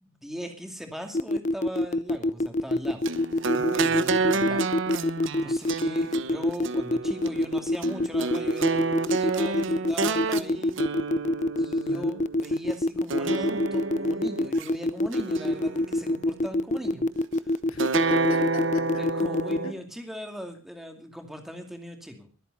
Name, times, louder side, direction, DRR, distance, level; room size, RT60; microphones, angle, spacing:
voice 1, 0.0-3.0 4.3-4.7 5.4-8.8 9.1-10.8 11.6-17.0 17.4-17.5 18.3-22.3, equal, ahead, 4 dB, 2.5 m, -39 dB
sound 1, 1.1-19.6, left 1 dB, 35° left, 0.6 m, -25 dB
sound 2, 3.1-12.5 13.1-14.7 15.1-16.2 17.8-19.7, right 4 dB, 65° right, 0.9 m, -29 dB
voice 2, 3.5-4.4 11.9-12.2 17.7-18.8 19.6-19.7, left 2 dB, 85° left, 6 dB, 1.9 m, -41 dB
21.5 x 8.3 x 5.4 m, 0.38 s
head